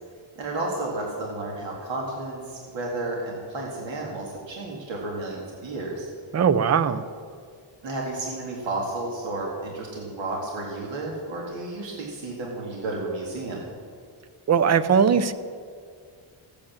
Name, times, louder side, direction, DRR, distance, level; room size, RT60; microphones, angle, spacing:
voice 1, 0.4-6.1 7.8-13.6, right 2 dB, 65° right, -2 dB, 2.3 m, -32 dB
voice 2, 6.3-7.0 14.5-15.3, right 7 dB, 35° right, 14 dB, 0.5 m, -20 dB
15.0 x 8.8 x 7.4 m, 2.1 s
wide cardioid pair, 165°, 48 cm